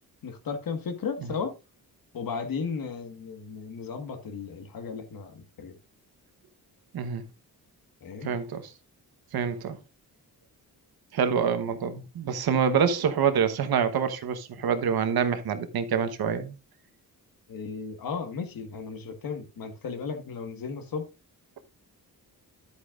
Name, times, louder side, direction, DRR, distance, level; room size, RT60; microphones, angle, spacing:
voice 1, 0.2-1.6 2.1-5.8 8.0-8.3 17.5-21.1, left 5 dB, 65° left, 1.7 m, -35 dB
voice 2, 6.9-7.2 8.2-8.7 9.3-9.8 11.1-16.5, right 7 dB, 75° right, 1.2 m, -26 dB
11.0 x 8.4 x 2.5 m
cardioid pair, 110°, 37 cm